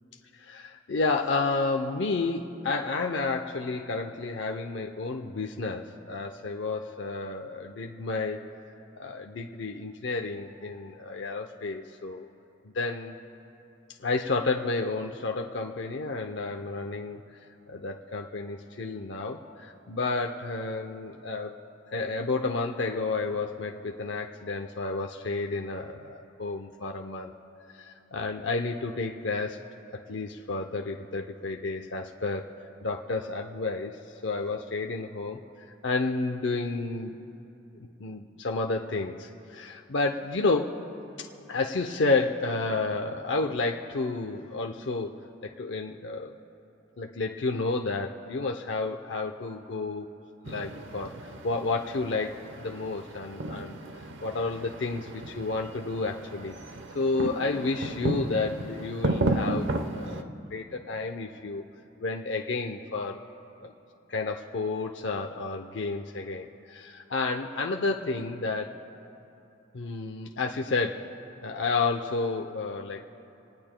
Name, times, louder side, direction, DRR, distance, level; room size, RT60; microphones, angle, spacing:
voice 1, 0.4-8.5 8.9-12.3 12.7-13.2 14.0-17.2 17.7-21.6 21.9-27.3 27.7-29.6 30.1-32.5 32.8-35.4 35.8-37.2 37.7-40.9 41.2-45.2 45.4-46.3 47.0-50.1 50.4-53.8 54.2-56.6 56.9-61.6 62.0-63.2 63.6-63.7 64.1-68.8 69.7-71.0 71.4-73.0, left 3 dB, 70° left, 3 dB, 0.6 m, -31 dB
sound 1, 50.5-60.2, right 1 dB, 85° right, 0.9 m, -34 dB
28.0 x 19.0 x 2.2 m, 2.8 s
head